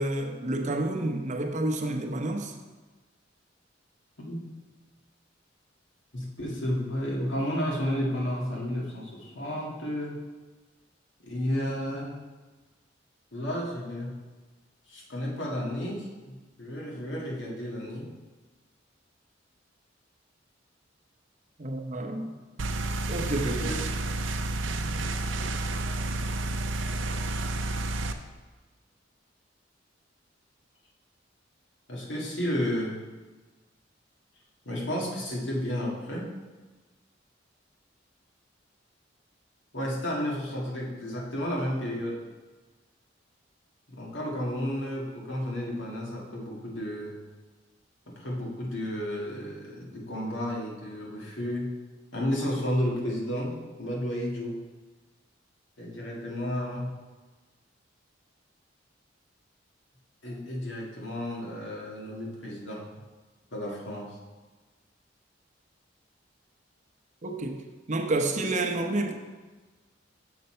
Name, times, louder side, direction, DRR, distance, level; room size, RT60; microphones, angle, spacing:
voice 1, 0.0-2.5 21.6-22.4 23.1-23.8 67.2-67.6 67.9-69.1, right 2 dB, 40° right, 4 dB, 0.8 m, -29 dB
voice 2, 4.2-4.5 6.1-10.2 11.2-12.2 13.3-14.2 14.9-18.1 23.4-23.8 31.9-33.0 34.7-36.3 39.7-42.2 43.9-47.2 48.1-51.7 52.1-54.6 55.8-56.9 60.2-62.9 63.5-64.2, equal, 85° left, -3 dB, 1.9 m, -32 dB
sound 1, 22.6-28.1, right 2 dB, 80° right, 0.6 m, -30 dB
6.9 x 6.6 x 4.4 m, 1.3 s
head